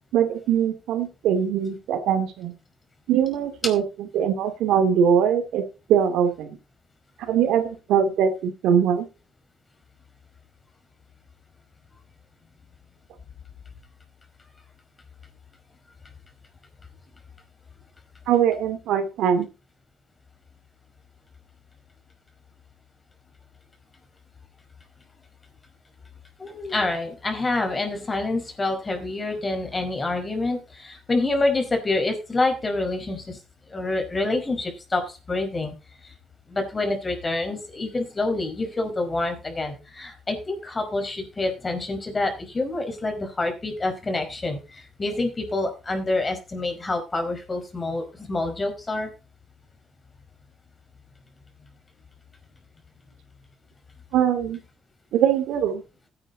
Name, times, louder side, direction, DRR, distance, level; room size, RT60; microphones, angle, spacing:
voice 1, 0.1-2.5 3.1-5.6 5.9-6.6 7.2-9.1 18.3-19.5 54.1-54.6 55.1-55.8, right 8 dB, 90° right, 8 dB, 2.5 m, -22 dB
voice 2, 26.4-33.4 33.7-35.7 36.0-36.1 36.5-49.1, left 2 dB, 25° left, 5 dB, 4.9 m, -27 dB
15.5 x 9.8 x 4.0 m, 0.31 s
cardioid pair, 90°, 0 cm